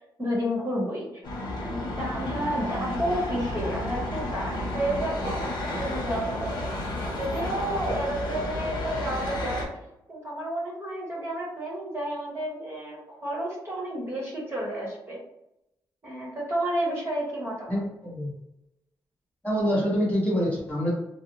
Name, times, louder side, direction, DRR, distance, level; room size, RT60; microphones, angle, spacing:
voice 1, 0.2-1.2 1.6-6.7 7.1-9.7 10.1-15.2 16.0-17.8, right 1 dB, 30° right, -5 dB, 1.0 m, -31 dB
sound 1, 1.2-9.6, left 1 dB, 65° left, 0.9 m, -32 dB
voice 2, 17.7-18.3 19.4-20.9, equal, 15° left, -6 dB, 1.2 m, -26 dB
2.6 x 2.0 x 2.9 m, 0.87 s
cardioid pair, 100°, 8 cm